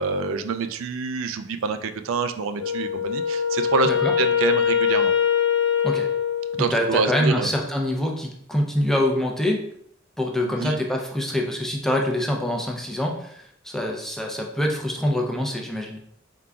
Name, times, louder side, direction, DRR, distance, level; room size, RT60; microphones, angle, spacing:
voice 1, 0.0-3.9 4.2-5.1 6.5-7.5 10.4-10.8, right 5 dB, 80° right, 9 dB, 0.4 m, -26 dB
Wind instrument woodwind instrument, 2.6-6.9, left 8 dB, 60° left, 0.9 m, -23 dB
voice 2, 6.6-9.6 10.2-16.0, left 1 dB, ahead, 0 dB, 0.6 m, -25 dB
4.5 x 3.8 x 2.3 m, 0.68 s
head